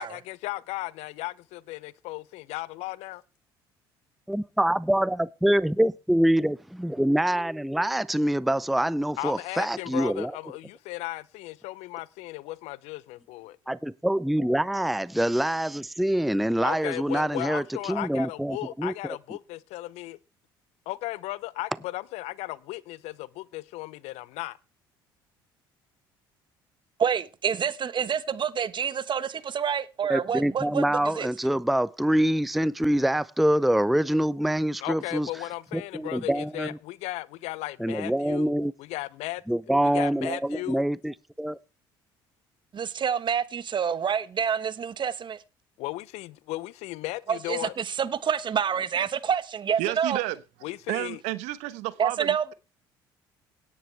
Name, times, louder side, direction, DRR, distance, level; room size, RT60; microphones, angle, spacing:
voice 1, 0.0-3.2 9.2-13.6 16.6-20.2 20.9-24.6 34.8-38.5 38.8-39.4 39.8-40.8 45.8-47.7 50.6-51.2, left 18 dB, 65° left, 0.7 m, -36 dB
voice 2, 4.3-10.4 13.7-19.2 30.1-35.3 35.7-36.8 37.8-38.7 39.5-41.6, right 1 dB, ahead, 0.5 m, -25 dB
voice 3, 27.0-30.8 31.1-31.3 42.7-45.4 47.3-50.2 52.0-52.5, right 7 dB, 40° right, 1.2 m, -27 dB
voice 4, 49.8-50.4 50.9-52.5, right 17 dB, 70° right, 1.1 m, -31 dB
17.5 x 9.7 x 3.4 m
hypercardioid pair, 60°, 12 cm